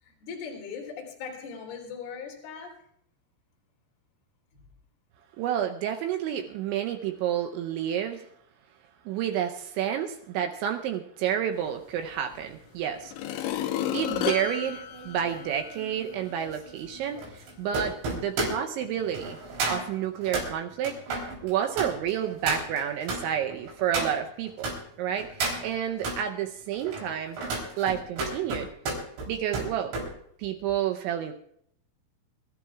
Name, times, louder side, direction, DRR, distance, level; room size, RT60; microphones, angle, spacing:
voice 1, 0.0-2.7 4.5-4.6, left 6 dB, 55° left, -1 dB, 4.5 m, -39 dB
voice 2, 5.4-8.3 9.1-13.6 13.9-19.4 19.7-21.0 21.4-27.4 27.8-28.7 29.3-29.9 30.4-31.3, right 9 dB, 80° right, 5 dB, 2.8 m, -30 dB
sound 1, 12.3-12.4 13.0-15.9 16.4-16.5, left 11 dB, 80° left, 3.1 m, -32 dB
sound 2, 14.1-24.8 25.2-26.2 26.7-30.1 30.4-30.7, right 3 dB, 60° right, 5.6 m, -34 dB
26.0 x 13.5 x 2.3 m, 0.69 s
omnidirectional pair, 5.9 m